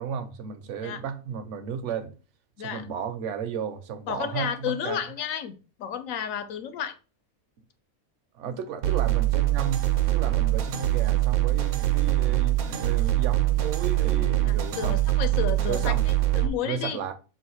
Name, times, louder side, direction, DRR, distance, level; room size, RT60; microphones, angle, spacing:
voice 1, 0.0-2.1 2.6-5.0 8.3-15.3 15.7-16.0 16.6-17.1, right 7 dB, 65° right, 0.8 m, -33 dB
voice 2, 4.1-7.0 14.4-17.0, left 8 dB, 75° left, 1.0 m, -32 dB
sound 1, 8.8-16.5, right 15 dB, 90° right, 1.1 m, -23 dB
3.9 x 2.5 x 4.3 m
omnidirectional pair, 1.5 m